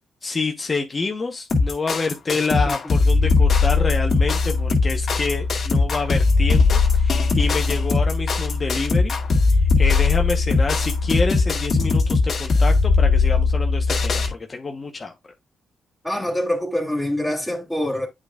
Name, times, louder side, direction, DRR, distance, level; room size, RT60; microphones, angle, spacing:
voice 1, 0.2-9.1 9.5-15.1, left 4 dB, 40° left, 1.1 m, -27 dB
sound 1, 1.5-14.3, left 4 dB, 55° left, 2.4 m, -19 dB
voice 2, 16.0-18.1, left 1 dB, ahead, 2.9 m, -25 dB
8.8 x 5.0 x 2.4 m
supercardioid pair, 60°, 0 cm